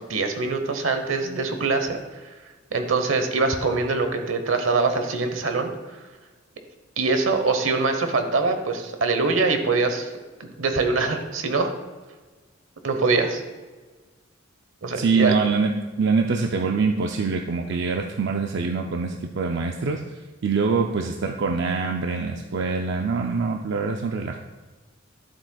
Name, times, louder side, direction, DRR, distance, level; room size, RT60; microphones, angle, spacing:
voice 1, 0.0-2.0 2.7-6.0 7.0-10.1 10.4-11.7 12.8-13.4 14.8-15.3, right 3 dB, 85° right, 7 dB, 1.0 m, -23 dB
voice 2, 15.0-20.0 20.4-24.4, right 4 dB, 60° right, 3 dB, 0.5 m, -24 dB
12.5 x 7.5 x 2.3 m, 1.3 s
head